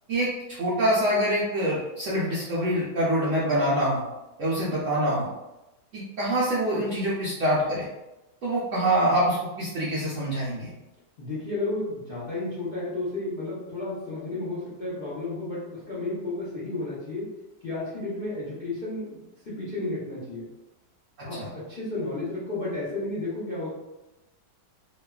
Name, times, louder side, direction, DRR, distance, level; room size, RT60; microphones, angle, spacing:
voice 1, 0.1-4.0 4.4-5.3 5.9-7.9 8.4-10.7 21.4-21.5, right 1 dB, 85° right, -7 dB, 0.6 m, -25 dB
voice 2, 11.2-17.4 17.6-19.2 19.4-20.5 21.2-23.7, left 2 dB, 75° left, -8 dB, 0.5 m, -32 dB
3.0 x 2.2 x 2.2 m, 1.0 s
omnidirectional pair, 2.0 m